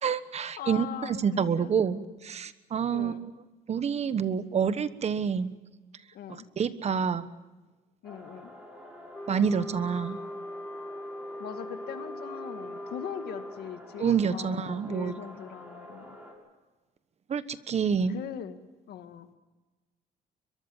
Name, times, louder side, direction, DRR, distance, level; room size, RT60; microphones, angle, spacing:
voice 1, 0.0-3.1 3.7-5.5 6.3-7.3 9.3-10.2 14.0-15.1 17.3-18.2, right 6 dB, 40° right, 13 dB, 1.2 m, -28 dB
voice 2, 0.6-1.7 2.9-3.2 6.1-6.4 8.0-8.5 11.4-16.2 18.1-18.6 18.9-19.3, left 9 dB, 70° left, 8 dB, 2.1 m, -41 dB
sound 1, 8.0-16.3, equal, 5° right, 7.0 m, -48 dB
Wind instrument woodwind instrument, 9.1-13.6, left 1 dB, 10° left, 2.7 m, -40 dB
23.0 x 23.0 x 7.2 m, 1.2 s
cardioid pair, 110°, 17 cm